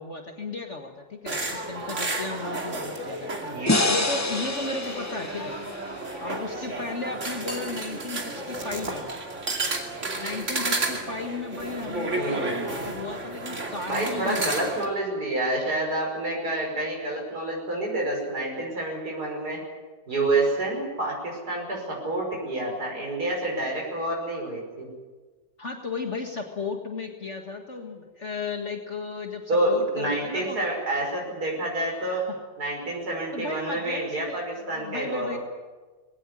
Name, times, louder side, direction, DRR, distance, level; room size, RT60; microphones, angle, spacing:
voice 1, 0.0-3.3 3.9-5.6 6.2-9.2 10.1-14.5 25.6-30.6 32.1-32.4 33.3-35.4, left 3 dB, 40° left, 3 dB, 2.0 m, -35 dB
sound 1, 1.3-14.8, right 2 dB, 40° right, 2.9 m, -32 dB
voice 2, 3.4-3.8 12.1-12.5 13.9-19.6 20.1-24.9 29.5-32.3 32.6-35.4, right 2 dB, 60° right, -1 dB, 6.2 m, -28 dB
sound 2, 3.7-6.9, left 2 dB, 20° left, 0.4 m, -28 dB
20.5 x 17.5 x 9.9 m, 1.3 s
omnidirectional pair, 1.9 m